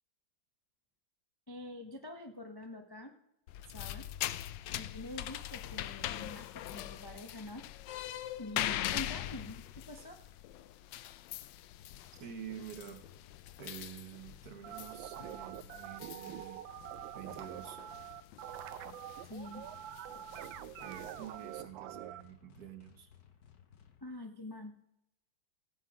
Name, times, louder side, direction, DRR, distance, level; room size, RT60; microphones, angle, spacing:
voice 1, 1.5-3.2 3.7-4.1 4.7-7.7 8.4-10.2 19.2-19.7 24.0-24.8, left 2 dB, 35° left, 4 dB, 0.3 m, -46 dB
sound 1, 3.5-21.6, left 13 dB, 75° left, 1.2 m, -43 dB
sound 2, 4.4-6.2 6.9-8.6 9.3-11.0 11.8-24.0, left 8 dB, 60° left, 1.4 m, -63 dB
voice 2, 12.1-13.1 13.6-16.6 17.1-17.8 20.8-23.1, right 8 dB, 55° right, 8 dB, 1.4 m, -48 dB
sound 3, 14.6-22.2, right 13 dB, 80° right, 1.3 m, -45 dB
16.5 x 8.1 x 4.8 m, 0.83 s
omnidirectional pair, 2.1 m